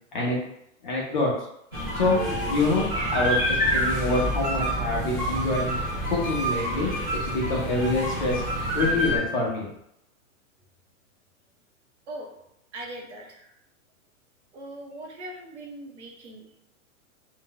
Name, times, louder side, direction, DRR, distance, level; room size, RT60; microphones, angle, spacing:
voice 1, 0.8-1.3 1.9-5.8 6.1-8.4 8.7-9.7, left 2 dB, 35° left, -3 dB, 0.6 m, -26 dB
sound 1, 1.7-9.2, equal, 20° right, 0.3 m, -27 dB
voice 2, 12.7-13.5 14.5-16.6, right 1 dB, 50° right, 0 dB, 0.7 m, -40 dB
2.6 x 2.1 x 3.7 m, 0.77 s
hypercardioid pair, 175°, 43 cm